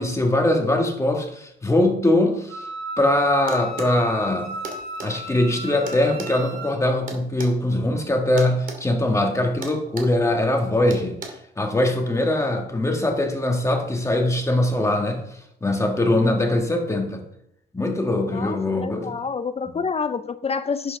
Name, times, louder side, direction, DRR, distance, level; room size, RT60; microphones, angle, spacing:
voice 1, 0.0-2.7 3.0-4.5 5.0-11.2 11.6-15.2 15.6-17.2 17.7-19.1, left 1 dB, 15° left, 2 dB, 2.0 m, -22 dB
Wind instrument woodwind instrument, 2.5-6.8, right 1 dB, 80° right, 3.2 m, -33 dB
sound 1, 3.5-4.0 4.6-5.1 5.9-7.6 8.4-8.8 9.1-9.3 9.6-10.2 10.9-11.3, right 4 dB, 45° right, 2.5 m, -35 dB
voice 2, 18.3-21.0, left 5 dB, 30° left, 12 dB, 0.5 m, -28 dB
11.0 x 8.1 x 3.7 m, 0.74 s
cardioid pair, 90°, 20 cm